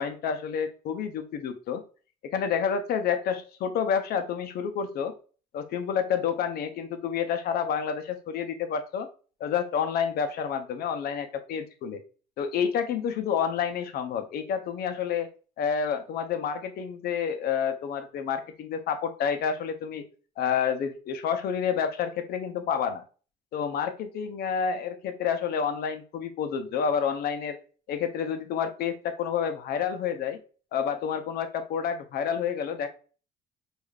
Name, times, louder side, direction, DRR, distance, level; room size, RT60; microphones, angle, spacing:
voice 1, 0.0-1.8 2.3-5.1 5.5-9.1 9.4-12.0 12.4-15.3 15.6-20.0 20.4-23.0 23.5-27.6 27.9-30.4 30.7-32.9, left 7 dB, 65° left, 8 dB, 0.6 m, -29 dB
4.8 x 2.5 x 2.3 m, 0.38 s
cardioid pair, 110°, 17 cm